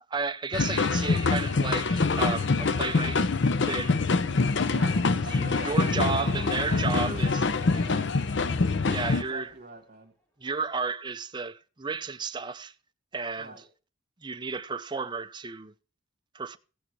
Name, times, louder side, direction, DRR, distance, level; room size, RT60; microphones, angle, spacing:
voice 1, 0.1-3.3 3.7-4.0 5.3-7.3 7.7-8.1 8.9-9.5 10.4-12.7 13.1-13.5 14.2-15.7 16.3-16.6, right 4 dB, 20° right, 0.5 m, -33 dB
sound 1, 0.5-9.2, left 3 dB, 60° left, 0.6 m, -25 dB
sound 2, 4.3-10.0, right 2 dB, 10° left, 2.6 m, -51 dB
voice 2, 4.7-7.4 7.8-8.1 9.0-10.1 13.4-13.7, right 2 dB, 45° right, 1.8 m, -42 dB
15.0 x 8.5 x 3.1 m
head